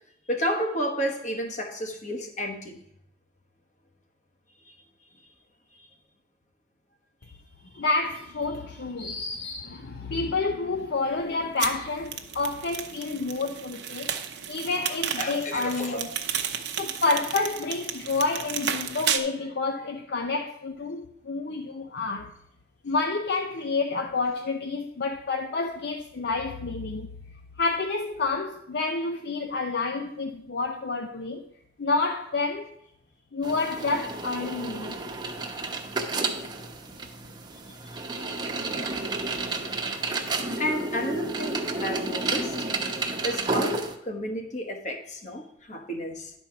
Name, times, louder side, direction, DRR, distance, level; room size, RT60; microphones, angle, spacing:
voice 1, 0.3-2.8 14.8-16.0 40.6-42.9 43.2-46.3, equal, 40° left, 1.2 m, -31 dB
voice 2, 7.8-14.1 14.5-16.2 16.8-22.3 22.8-27.1 27.6-31.5 31.8-32.7 33.3-35.0, left 3 dB, 55° left, 0.6 m, -29 dB
sound 1, 11.6-19.2, right 8 dB, 60° right, 0.8 m, -32 dB
sound 2, 33.4-43.9, right 3 dB, 20° right, 0.8 m, -31 dB
10.5 x 4.4 x 5.7 m
head